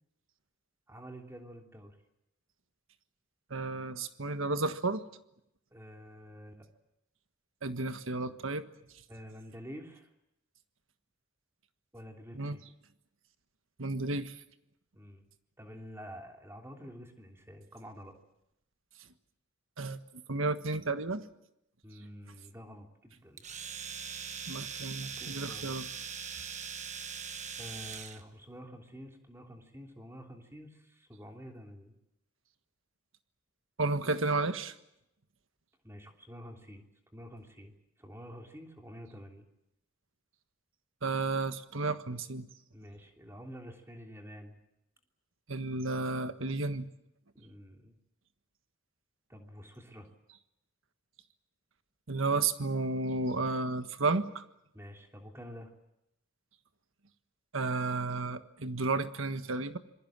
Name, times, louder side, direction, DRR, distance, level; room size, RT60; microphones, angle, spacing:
voice 1, 0.9-2.0 5.7-6.7 9.1-10.1 11.9-12.6 14.9-15.2 15.6-18.2 21.8-23.5 25.1-25.8 27.6-31.9 35.8-36.9 37.1-39.4 42.7-44.6 47.3-48.0 49.3-50.1 54.7-55.7, equal, 15° right, 3 dB, 3.1 m, -48 dB
voice 2, 3.5-5.0 7.6-8.6 12.3-12.6 13.8-14.4 19.8-20.0 20.3-21.2 24.5-25.9 26.3-26.4 33.8-34.7 41.0-42.5 45.5-46.9 52.1-54.4 57.5-59.8, right 3 dB, 80° right, 10 dB, 1.5 m, -32 dB
Domestic sounds home sounds, 23.4-28.2, right 7 dB, 35° right, 1.4 m, -41 dB
27.0 x 21.5 x 7.5 m, 0.82 s
head